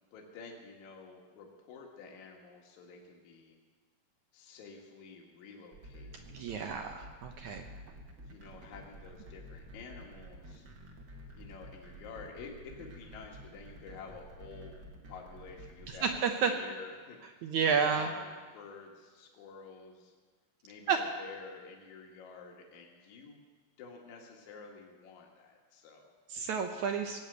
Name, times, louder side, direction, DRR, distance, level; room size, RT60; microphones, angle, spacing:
voice 1, 0.1-3.6 4.3-7.1 8.3-10.7 11.4-16.2 16.5-20.1 20.6-23.4 23.8-26.1, left 4 dB, 60° left, 0 dB, 2.8 m, -50 dB
sound 1, 5.7-16.2, equal, 50° right, 1.3 m, -50 dB
voice 2, 6.3-7.7 15.9-16.5 17.4-18.1 20.9-21.0 26.3-27.2, right 6 dB, 75° right, 4 dB, 1.8 m, -30 dB
18.5 x 8.6 x 8.0 m, 1.4 s
omnidirectional pair, 4.3 m